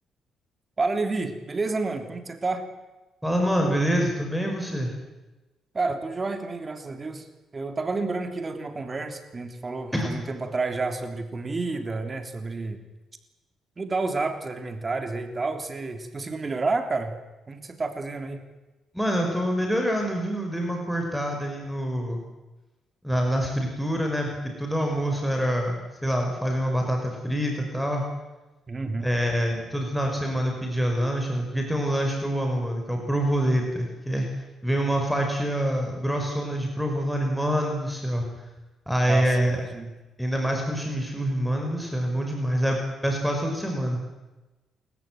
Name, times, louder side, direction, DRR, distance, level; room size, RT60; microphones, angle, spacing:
voice 1, 0.8-2.7 5.7-7.3 7.5-12.8 13.8-17.2 17.5-18.4 28.7-29.1 39.1-39.9, right 3 dB, 30° right, 7 dB, 3.2 m, -30 dB
voice 2, 3.2-4.9 9.9-10.2 18.9-22.2 23.0-24.3 24.6-28.0 29.0-34.3 34.6-38.2 38.9-39.6 40.2-44.0, equal, ahead, 2 dB, 5.4 m, -26 dB
30.0 x 14.5 x 9.5 m, 1.1 s
cardioid pair, 90°, 0 cm